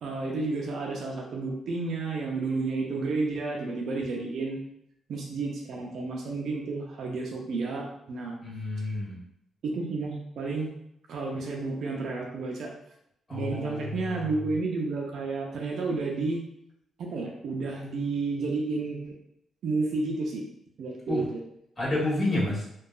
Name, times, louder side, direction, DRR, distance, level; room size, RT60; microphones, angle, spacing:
voice 1, 0.0-4.6 5.1-8.4 9.6-10.7 11.1-12.7 13.3-16.4 17.0-19.1 19.6-20.4 20.8-21.4, right 3 dB, 70° right, -1 dB, 0.4 m, -31 dB
voice 2, 8.4-9.2 13.3-14.2 21.1-21.2 21.8-22.6, left 2 dB, 30° left, -6 dB, 1.5 m, -29 dB
2.7 x 2.3 x 2.3 m, 0.78 s
supercardioid pair, 60°, 0 cm